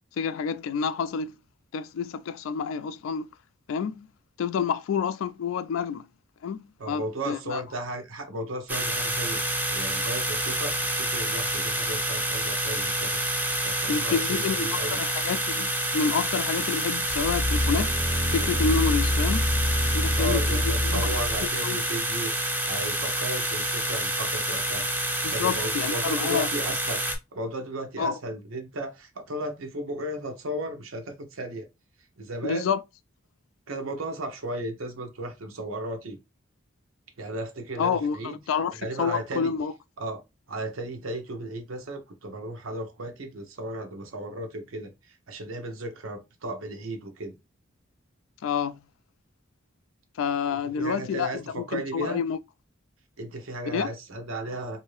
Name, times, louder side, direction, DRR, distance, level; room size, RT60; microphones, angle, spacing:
voice 1, 0.2-1.4 1.7-3.3 3.7-4.1 4.4-6.1 6.4-7.6 13.9-17.9 18.3-19.5 19.9-21.1 21.6-21.8 25.2-26.5 28.0-28.2 32.4-32.8 37.8-38.2 38.5-39.7 48.4-48.8 50.2-52.4 53.7-53.9, left 6 dB, 75° left, 0.3 m, -28 dB
voice 2, 6.8-9.4 9.7-15.0 20.2-22.3 22.6-24.9 25.3-27.0 27.3-31.7 32.2-32.7 33.7-36.2 37.2-38.4 38.8-39.5 40.0-40.2 40.5-47.3 50.5-52.2 53.2-54.8, right 1 dB, 90° right, 0.8 m, -35 dB
sound 1, 8.7-27.2, right 1 dB, 10° right, 0.5 m, -28 dB
sound 2, 17.1-21.5 22.0-22.1, left 1 dB, 40° left, 0.7 m, -26 dB
2.6 x 2.6 x 3.1 m
head